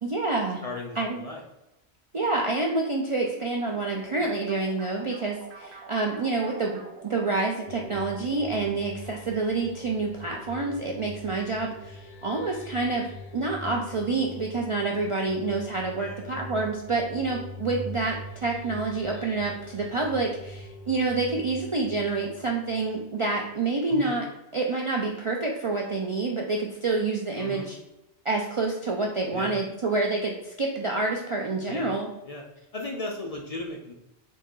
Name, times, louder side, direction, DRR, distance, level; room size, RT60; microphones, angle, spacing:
voice 1, 0.0-0.6 1.0-1.2 2.1-13.1 13.3-24.3 24.5-27.8 28.2-32.1, right 3 dB, 50° right, -1 dB, 0.3 m, -28 dB
voice 2, 0.6-1.4 16.0-16.4 23.9-24.2 27.3-27.7 29.3-29.5 31.7-31.9 32.2-32.4 32.7-33.9, left 2 dB, 50° left, 0 dB, 0.5 m, -36 dB
sound 1, 3.7-8.9, right 4 dB, 80° right, 0.9 m, -45 dB
sound 2, 7.7-23.1, left 2 dB, 90° left, 1.0 m, -43 dB
4.0 x 2.8 x 3.6 m, 0.93 s
omnidirectional pair, 1.1 m